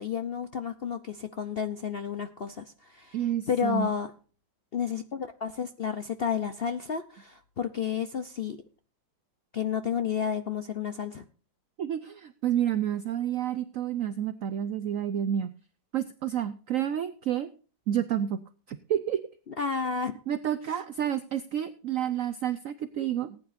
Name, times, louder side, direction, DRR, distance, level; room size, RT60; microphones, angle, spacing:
voice 1, 0.0-3.2 3.5-4.1 4.7-8.6 9.5-11.3 19.5-20.2 20.7-20.8, left 7 dB, 75° left, 9 dB, 0.5 m, -31 dB
voice 2, 3.1-3.9 11.8-15.5 15.9-17.5 17.9-18.4 18.7-19.2 20.3-23.4, right 10 dB, 70° right, 12 dB, 0.8 m, -29 dB
19.0 x 9.5 x 2.6 m, 0.37 s
omnidirectional pair, 2.1 m